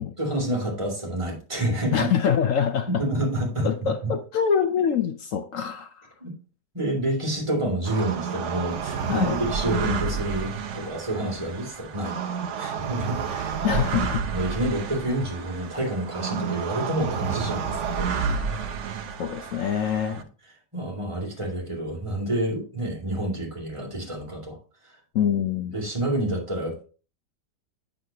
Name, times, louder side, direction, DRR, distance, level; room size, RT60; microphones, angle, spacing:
voice 1, 0.2-2.1 3.0-4.1 6.2-6.3 6.7-12.2 12.6-13.8 14.3-18.1 20.1-20.2 20.7-24.6 25.7-26.8, right 1 dB, 15° right, 2.3 m, -28 dB
voice 2, 1.9-2.9 3.6-6.1 9.1-9.4 13.6-14.3 18.1-18.4 19.2-20.2 25.1-25.8, left 8 dB, 70° left, 0.8 m, -25 dB
sound 1, 7.8-20.2, right 6 dB, 60° right, 0.8 m, -30 dB
7.8 x 6.6 x 2.8 m
omnidirectional pair, 1.9 m